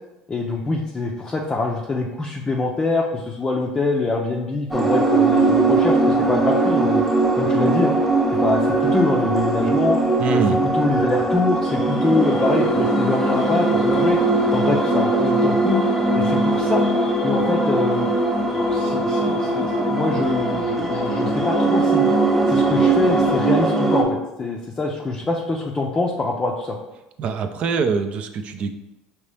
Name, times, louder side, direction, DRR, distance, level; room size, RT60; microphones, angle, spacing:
voice 1, 0.3-7.0 7.4-7.9 8.4-10.0 10.3-10.4 10.7-14.2 14.5-15.8 16.1-16.8 17.2-18.1 18.7-22.1 22.5-26.8, left 3 dB, 20° left, -2 dB, 0.5 m, -24 dB
sound 1, 4.7-24.0, right 2 dB, 5° right, 1.1 m, -20 dB
voice 2, 10.2-10.6 27.2-28.7, right 5 dB, 50° right, 7 dB, 0.5 m, -24 dB
5.3 x 2.9 x 3.3 m, 0.96 s
supercardioid pair, 100°, 3 cm